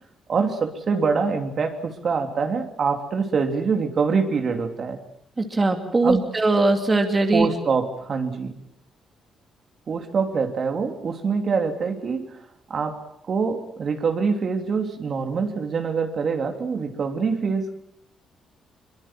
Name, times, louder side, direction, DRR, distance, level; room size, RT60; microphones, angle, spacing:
voice 1, 0.3-5.0 6.0-6.3 7.3-8.6 9.9-17.7, right 5 dB, 50° right, 5 dB, 3.1 m, -25 dB
voice 2, 5.4-7.5, right 2 dB, 25° right, 5 dB, 2.8 m, -20 dB
23.5 x 22.5 x 7.6 m, 0.70 s
cardioid pair, 90°, 0 cm